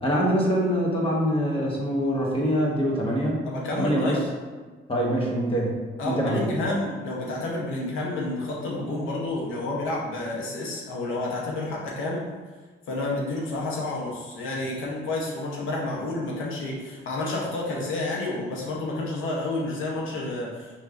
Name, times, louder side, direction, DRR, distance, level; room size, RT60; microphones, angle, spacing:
voice 1, 0.0-3.4 3.8-4.2 4.9-5.8 6.0-6.4, equal, 25° left, -2 dB, 1.2 m, -24 dB
voice 2, 3.5-4.2 6.0-12.2 12.9-20.8, left 2 dB, 90° left, -3 dB, 0.9 m, -30 dB
5.3 x 3.3 x 2.5 m, 1.3 s
cardioid pair, 90°, 20 cm